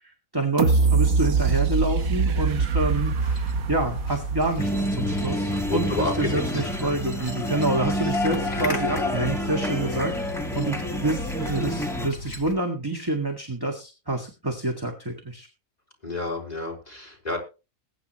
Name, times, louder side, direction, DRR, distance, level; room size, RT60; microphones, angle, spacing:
voice 1, 0.3-10.2 10.5-15.5, right 2 dB, 15° right, 2 dB, 1.8 m, -27 dB
sound 1, 0.6-5.5 5.9-6.0, right 5 dB, 80° right, 1.4 m, -23 dB
sound 2, 2.9-12.6, left 3 dB, 75° left, 3.7 m, -37 dB
sound 3, 4.6-12.1, equal, ahead, 1.7 m, -28 dB
voice 2, 5.2-7.5 8.0-8.1 8.7-9.1 9.4-9.8 10.3-10.4 16.0-17.4, left 2 dB, 30° left, -1 dB, 4.4 m, -32 dB
21.5 x 9.6 x 3.1 m, 0.31 s
omnidirectional pair, 1.4 m